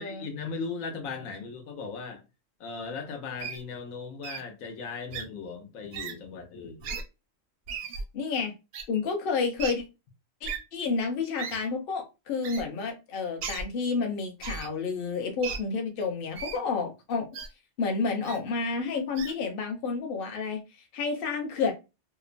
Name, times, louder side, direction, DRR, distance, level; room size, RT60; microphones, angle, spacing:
voice 1, 0.0-2.2 2.6-6.8, left 5 dB, 85° left, 1.1 m, -37 dB
Wild animals, 3.4-3.6 4.2-4.4 5.1-5.2 5.9-6.1 6.8-7.0 7.7-8.0 8.7-8.8 9.6-9.7 10.4-10.6 11.4-11.6 12.4-12.6 13.4-13.6 14.4-14.7 15.4-15.6 16.4-16.6 17.3-17.5 18.2-18.4 19.2-19.3, right 6 dB, 65° right, 0.6 m, -35 dB
voice 2, 8.1-8.5 8.9-9.8 10.4-17.3 17.8-20.6 20.9-21.7, left 4 dB, 50° left, 0.8 m, -30 dB
2.9 x 2.0 x 2.5 m
omnidirectional pair, 1.4 m